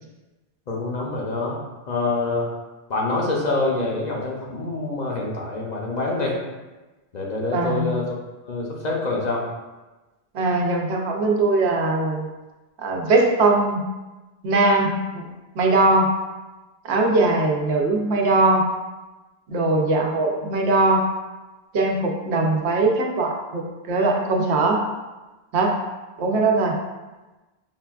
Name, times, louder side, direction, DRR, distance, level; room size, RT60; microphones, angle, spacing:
voice 1, 0.7-1.6 1.9-2.5 2.9-6.4 7.1-8.2 8.5-9.4, left 2 dB, 50° left, -2 dB, 0.6 m, -26 dB
voice 2, 7.5-8.0 10.3-12.3 12.8-13.8 14.4-15.2 15.5-16.1 16.8-18.7 19.5-21.0 21.7-24.8 25.5-25.8 26.2-26.7, right 2 dB, 80° right, 1 dB, 0.9 m, -20 dB
5.6 x 2.3 x 2.3 m, 1.1 s
omnidirectional pair, 1.1 m